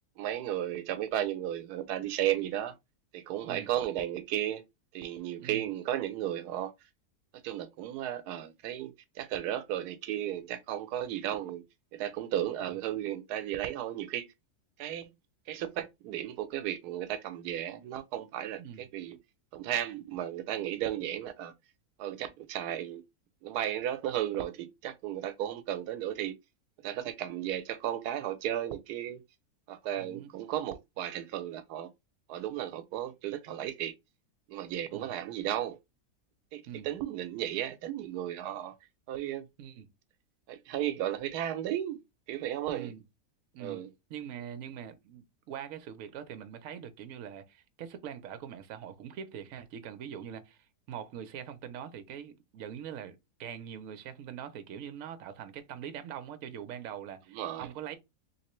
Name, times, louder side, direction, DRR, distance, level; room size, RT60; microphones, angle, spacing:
voice 1, 0.2-2.7 3.1-4.6 4.9-6.7 7.4-11.6 11.9-14.3 14.8-15.1 15.5-19.2 19.5-21.5 22.0-23.0 23.4-26.3 26.8-29.2 29.7-31.9 32.3-33.9 34.5-35.8 36.5-38.7 39.1-39.5 40.5-42.0 42.3-42.9 43.6-43.9 57.3-57.7, right 11 dB, 90° right, 1.1 m, -34 dB
voice 2, 30.0-30.3 34.9-35.1 36.7-36.9 39.6-39.9 42.7-43.0 43.5-43.8 44.1-50.6 50.9-58.0, right 9 dB, 65° right, 1.0 m, -43 dB
3.2 x 3.2 x 3.0 m
omnidirectional pair, 1.6 m